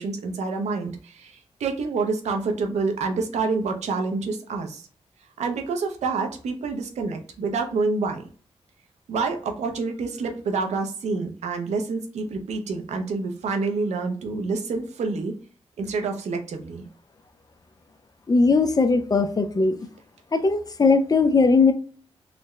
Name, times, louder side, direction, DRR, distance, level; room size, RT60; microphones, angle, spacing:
voice 1, 0.0-4.8 5.4-8.2 9.1-15.3 15.8-16.8, right 4 dB, 90° right, 0.7 m, -27 dB
voice 2, 18.3-19.7 20.3-21.7, left 4 dB, 35° left, 0.5 m, -19 dB
3.9 x 2.1 x 3.2 m
cardioid pair, 70°, 11 cm